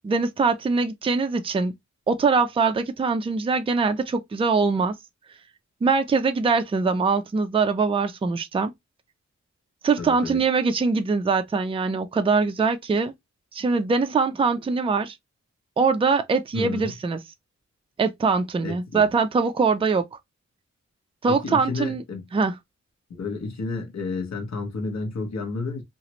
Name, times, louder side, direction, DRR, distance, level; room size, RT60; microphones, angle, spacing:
voice 1, 0.0-1.7 2.1-5.0 5.8-8.7 9.8-13.1 13.5-15.1 15.8-17.2 18.0-20.0 21.2-22.0 22.3-22.6, right 4 dB, 20° right, 0.3 m, -22 dB
voice 2, 10.0-10.4 16.5-16.9 18.6-19.1 21.3-22.2 23.1-25.8, left 3 dB, 65° left, 0.9 m, -31 dB
3.0 x 2.4 x 2.8 m
wide cardioid pair, 145°, 29 cm